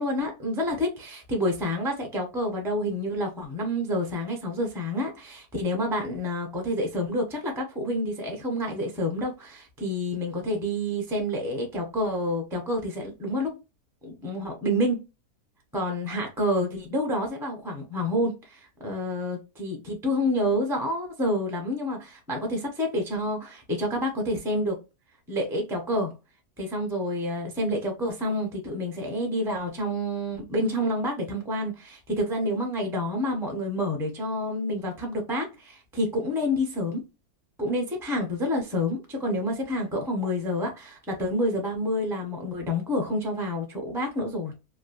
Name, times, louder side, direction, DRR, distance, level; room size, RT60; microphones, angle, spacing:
voice 1, 0.0-13.6 14.0-15.0 15.7-24.8 25.3-26.1 26.6-37.0 37.6-44.5, left 1 dB, ahead, 0.6 m, -28 dB
3.2 x 2.6 x 2.5 m
omnidirectional pair, 1.7 m